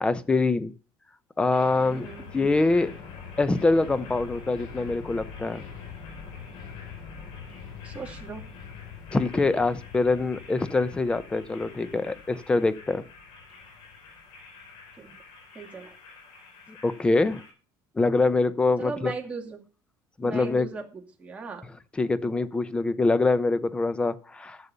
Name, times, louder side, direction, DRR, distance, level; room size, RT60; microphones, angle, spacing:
voice 1, 0.0-0.7 1.4-2.1 2.3-2.9 3.4-5.6 9.1-13.0 16.7-17.4 18.0-19.1 20.2-20.7 22.0-24.6, left 3 dB, 10° left, 15 dB, 0.7 m, -24 dB
sound 1, 1.5-17.5, left 5 dB, 65° left, 4.4 m, -44 dB
voice 2, 1.9-2.3 7.8-8.4 14.9-15.2 15.5-15.9 18.8-19.6 20.2-21.7, right 4 dB, 15° right, 0 dB, 2.4 m, -38 dB
14.0 x 6.7 x 6.9 m, 0.38 s
cardioid pair, 155°, 9 cm